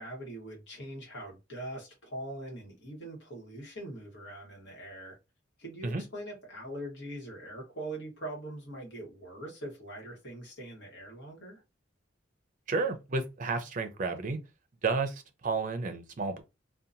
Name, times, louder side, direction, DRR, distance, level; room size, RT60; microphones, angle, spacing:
voice 1, 0.0-5.2 5.6-11.6, right 1 dB, 60° left, 1.2 m, -42 dB
voice 2, 12.7-14.4 14.8-16.4, right 4 dB, 40° right, 0.5 m, -31 dB
2.8 x 2.2 x 2.5 m
head